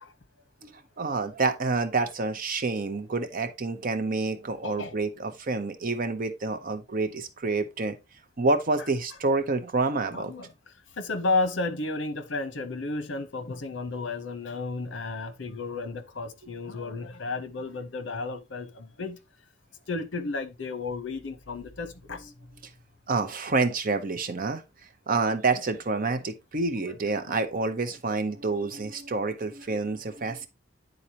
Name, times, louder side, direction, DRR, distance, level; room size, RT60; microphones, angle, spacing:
voice 1, 0.6-8.0 8.4-10.3 23.1-24.6 25.1-30.5, right 3 dB, 50° right, 0.8 m, -28 dB
voice 2, 4.6-4.9 10.1-10.5 10.9-19.2 19.9-22.3 26.8-27.2, left 3 dB, 75° left, 0.9 m, -32 dB
9.8 x 4.0 x 2.8 m
head